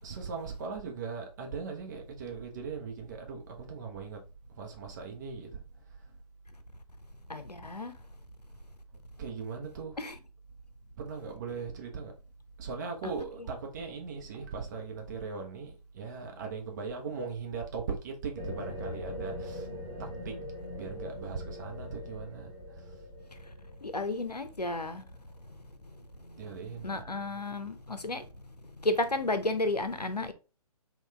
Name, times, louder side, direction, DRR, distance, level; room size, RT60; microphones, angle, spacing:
voice 1, 0.0-4.2 4.6-5.6 9.2-10.0 11.0-12.1 12.6-19.7 20.0-20.3 20.7-22.5 26.4-27.0, right 5 dB, 30° right, 0.7 m, -39 dB
voice 2, 7.3-7.9 10.0-10.1 13.0-13.1 23.8-25.1 26.2-26.3 26.7-28.2 28.6-30.3, left 2 dB, 90° left, 0.6 m, -32 dB
sound 1, 18.3-25.6, left 1 dB, 15° right, 1.2 m, -42 dB
3.8 x 2.4 x 3.2 m
figure-of-eight pair, 135°, 20 cm